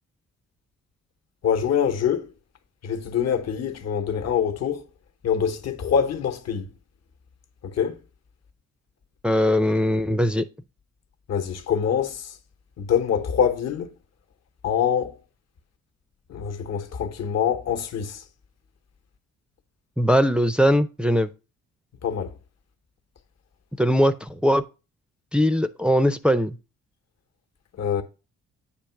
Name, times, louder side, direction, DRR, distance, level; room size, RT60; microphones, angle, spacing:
voice 1, 1.4-2.3 2.8-4.8 5.2-6.7 7.7-8.0 11.3-12.3 12.8-13.9 14.6-15.1 16.3-18.2 22.0-22.3 27.8-28.0, left 8 dB, 60° left, 1.1 m, -24 dB
voice 2, 9.2-10.5 20.0-21.3 23.8-24.6 25.3-26.5, equal, 5° right, 0.5 m, -20 dB
8.5 x 3.0 x 5.7 m
cardioid pair, 90°, 30 cm